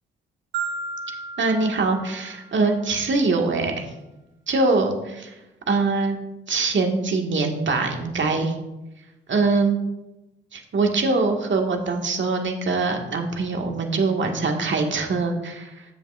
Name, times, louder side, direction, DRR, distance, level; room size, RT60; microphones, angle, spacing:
Marimba xylophone, 0.5-2.7, right 4 dB, 80° right, 1.2 m, -33 dB
voice 1, 1.4-3.9 4.5-5.3 5.7-6.2 6.5-8.5 9.3-9.8 10.5-15.8, right 3 dB, 40° right, 3 dB, 1.8 m, -23 dB
14.0 x 7.1 x 2.5 m, 0.97 s
figure-of-eight pair, 45°, 30 cm